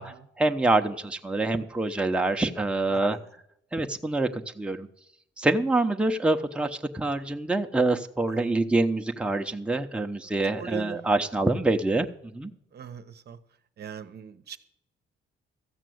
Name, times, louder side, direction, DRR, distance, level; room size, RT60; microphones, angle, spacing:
voice 1, 0.0-3.2 3.7-4.9 5.4-12.1 12.3-12.5, right 2 dB, 5° right, 0.9 m, -26 dB
voice 2, 2.9-3.2 8.3-8.7 10.6-11.1 12.7-13.4 13.8-14.6, right 6 dB, 55° right, 0.9 m, -41 dB
14.0 x 6.1 x 7.8 m
cardioid pair, 90°, 20 cm